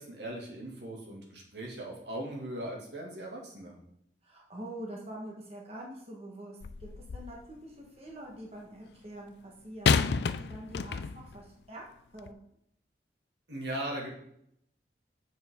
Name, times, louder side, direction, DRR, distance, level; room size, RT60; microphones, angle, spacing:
voice 1, 0.0-3.7 13.5-14.1, right 1 dB, 75° right, -1 dB, 2.4 m, -39 dB
voice 2, 4.2-11.8 12.1-12.4, right 1 dB, 35° right, -2 dB, 1.5 m, -45 dB
sound 1, 6.6-7.4 9.9-11.4 12.2-12.3, left 5 dB, 70° left, 0.4 m, -29 dB
9.3 x 7.2 x 3.8 m, 0.73 s
head